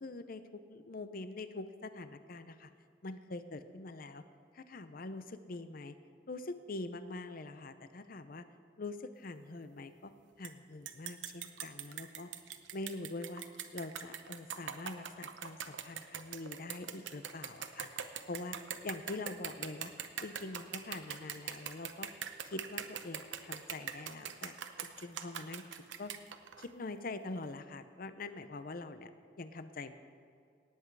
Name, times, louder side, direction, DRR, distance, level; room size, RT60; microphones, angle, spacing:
voice 1, 0.0-2.7 3.0-4.2 4.5-5.9 6.3-8.5 8.8-10.1 10.4-12.3 12.7-13.4 13.7-18.6 18.8-19.9 20.2-22.1 22.4-25.6 26.0-26.1 26.6-29.1 29.4-29.9, left 2 dB, 50° left, 11 dB, 0.7 m, -44 dB
sound 1, 10.4-10.5 10.9-26.7, right 9 dB, 80° right, 0.8 m, -42 dB
18.5 x 8.1 x 4.7 m, 2.4 s
head